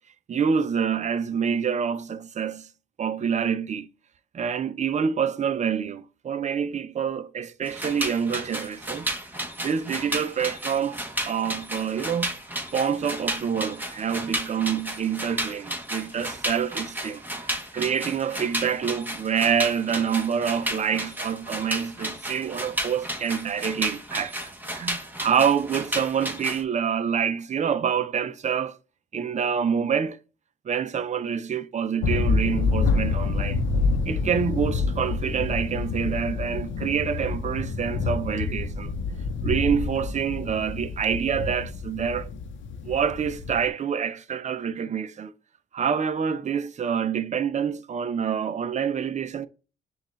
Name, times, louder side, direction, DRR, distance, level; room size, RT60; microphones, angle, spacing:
voice 1, 0.3-2.7 3.0-3.9 4.3-9.1 9.6-11.0 11.3-12.3 12.7-17.2 17.7-24.4 24.7-28.8 29.1-30.2 30.7-33.6 34.1-38.9 39.4-42.3 42.8-45.3 45.7-49.5, right 7 dB, 35° right, 0.5 m, -27 dB
sound 1, 7.6-26.6, right 1 dB, 10° right, 0.9 m, -33 dB
sound 2, 32.0-43.7, left 4 dB, 75° left, 0.7 m, -27 dB
6.4 x 2.4 x 3.1 m
cardioid pair, 90°, 20 cm